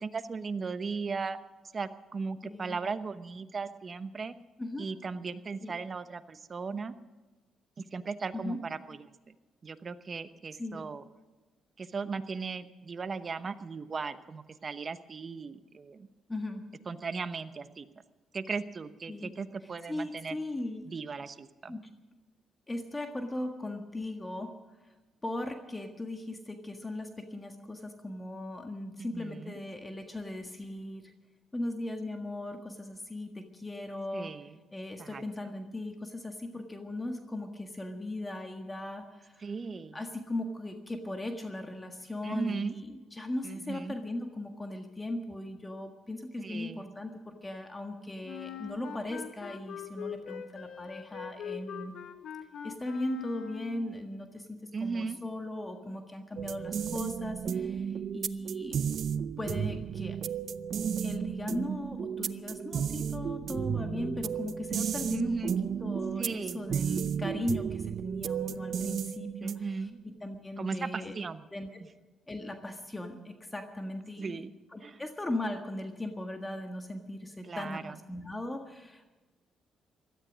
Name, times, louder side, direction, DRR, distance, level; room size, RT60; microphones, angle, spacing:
voice 1, 0.0-1.4 1.7-4.4 4.8-6.9 7.8-9.3 9.6-11.0 11.8-16.1 16.9-17.9 18.3-20.4 20.8-21.8 29.0-29.5 34.1-34.6 35.0-35.2 39.4-40.0 42.2-42.7 43.4-43.9 46.4-46.9 54.7-55.2 65.1-65.5 66.2-66.7 69.4-70.0 70.6-71.4 74.2-74.5 74.8-75.0 77.4-77.9, right 4 dB, 40° right, 11 dB, 1.0 m, -37 dB
voice 2, 2.4-2.8 4.6-4.9 5.6-5.7 8.3-8.6 10.6-10.8 16.3-16.6 19.1-19.3 19.9-20.9 21.7-21.9 22.7-24.5 25.2-31.1 31.5-34.3 34.7-39.5 39.9-52.0 52.6-58.8 59.4-60.2 61.0-65.5 65.8-71.1 71.5-71.7 72.3-74.4 74.7-79.1, left 1 dB, 15° left, 4 dB, 1.6 m, -38 dB
Wind instrument woodwind instrument, 48.2-54.0, left 8 dB, 70° left, 1.4 m, -42 dB
sound 1, 56.4-69.8, right 7 dB, 55° right, 0.6 m, -33 dB
17.0 x 13.0 x 6.3 m, 1.2 s
cardioid pair, 90°, 0 cm